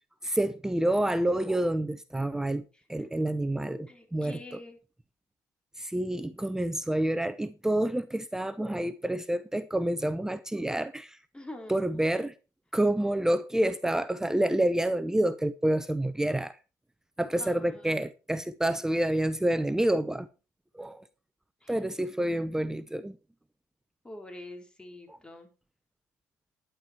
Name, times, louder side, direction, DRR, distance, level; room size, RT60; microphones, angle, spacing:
voice 1, 0.2-2.6 2.9-4.4 5.8-11.2 11.7-12.3 12.7-16.6 17.2-20.3 20.7-21.0 21.7-23.2 25.1-25.2, right 1 dB, 5° right, 0.8 m, -28 dB
voice 2, 3.9-4.8 11.3-12.0 17.4-18.0 21.6-21.8 24.0-25.5, left 1 dB, 10° left, 4.1 m, -46 dB
11.5 x 10.5 x 4.5 m
cardioid pair, 105°, 7 cm